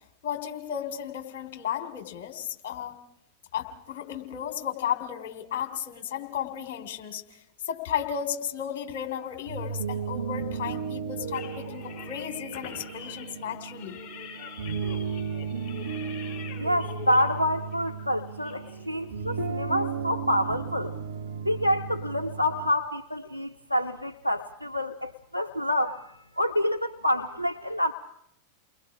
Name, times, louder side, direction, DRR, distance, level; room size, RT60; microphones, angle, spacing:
voice 1, 0.2-3.0 3.5-7.4 7.6-14.0, left 9 dB, 50° left, 5 dB, 3.2 m, -34 dB
sound 1, 9.3-22.7, right 6 dB, 70° right, 0.9 m, -35 dB
sound 2, 11.3-19.5, left 8 dB, 35° left, 6.2 m, -44 dB
voice 2, 16.6-20.9 21.4-27.9, left 1 dB, 85° left, 7 dB, 0.7 m, -27 dB
30.0 x 22.0 x 4.9 m, 0.75 s
figure-of-eight pair, 90°, 0 cm